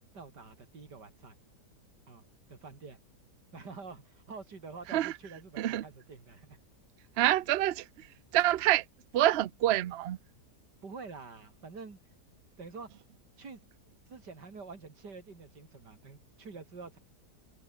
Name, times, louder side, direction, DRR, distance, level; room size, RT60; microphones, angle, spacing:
voice 1, 0.1-1.4 2.1-2.2 2.5-3.0 3.5-6.6 10.8-12.0 12.6-12.9 13.4-13.7 14.1-17.0, right 4 dB, 90° right, 3.9 m, -47 dB
voice 2, 7.2-8.1 8.3-8.8 9.1-10.2, right 14 dB, 70° right, 0.6 m, -27 dB
omnidirectional pair, 1.8 m